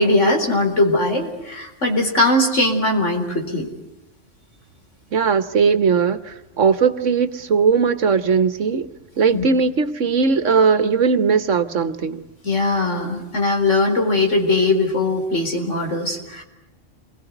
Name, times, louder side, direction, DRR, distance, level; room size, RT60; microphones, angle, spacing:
voice 1, 0.0-3.7 9.3-9.4 12.4-16.4, left 2 dB, 80° left, 4.7 m, -20 dB
voice 2, 5.1-12.2, right 5 dB, 85° right, 1.6 m, -19 dB
29.0 x 22.5 x 8.1 m
omnidirectional pair, 1.2 m